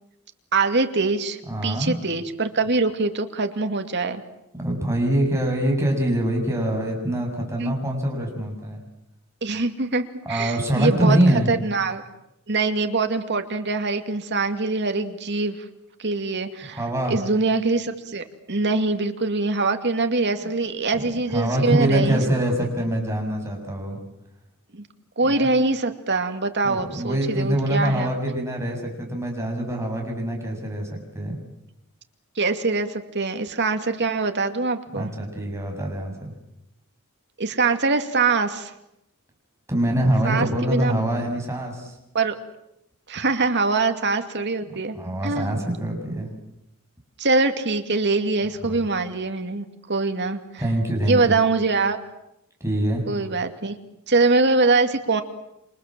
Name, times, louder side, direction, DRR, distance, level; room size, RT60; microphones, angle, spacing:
voice 1, 0.5-4.2 7.6-7.7 9.4-11.2 11.5-12.0 12.5-15.6 16.0-16.8 17.1-22.2 24.7-24.8 25.2-28.1 32.4-35.1 37.4-38.7 40.2-41.0 42.1-42.3 43.1-45.0 45.2-45.6 47.2-50.4 51.1-52.0 53.1-53.7 54.1-55.2, right 3 dB, 50° right, 7 dB, 2.4 m, -23 dB
voice 2, 1.5-1.9 4.6-8.8 10.3-11.5 16.7-17.2 20.9-21.0 21.3-24.0 25.2-25.5 26.6-31.4 34.9-36.3 39.7-41.9 44.9-46.3 48.7-48.8 50.6-51.3 52.6-53.0, right 1 dB, 15° right, 1 dB, 7.5 m, -24 dB
28.5 x 26.5 x 7.6 m, 0.85 s
head